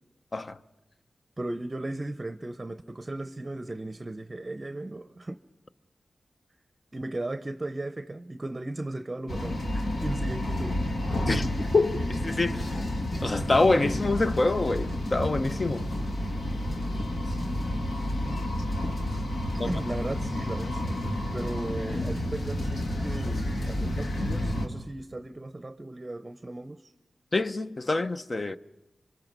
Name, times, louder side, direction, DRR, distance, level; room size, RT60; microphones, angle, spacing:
voice 1, 1.4-5.4 6.9-10.8 19.1-19.3 19.6-21.0 21.3-26.9, right 2 dB, 30° right, 0.7 m, -36 dB
sound 1, 9.3-24.7, left 1 dB, 75° left, 2.5 m, -30 dB
voice 2, 11.3-12.9 13.2-15.9 19.6-19.7 27.3-28.6, left 2 dB, 40° left, 0.8 m, -26 dB
27.0 x 24.0 x 5.3 m
wide cardioid pair, 70°, 0 cm